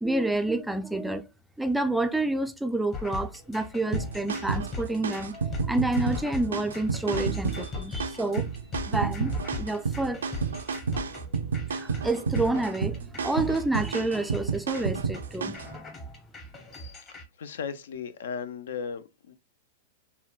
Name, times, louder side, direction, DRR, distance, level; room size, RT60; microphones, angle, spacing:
voice 1, 0.0-1.3 1.6-5.3 5.7-8.5 8.9-10.2 11.7-16.0, right 2 dB, 5° right, 0.3 m, -29 dB
sound 1, 2.9-17.3, left 3 dB, 30° left, 1.1 m, -40 dB
sound 2, 3.9-15.7, right 5 dB, 80° right, 0.3 m, -31 dB
voice 2, 17.4-19.3, left 6 dB, 70° left, 0.4 m, -36 dB
3.6 x 2.1 x 2.3 m
hypercardioid pair, 105°, 0 cm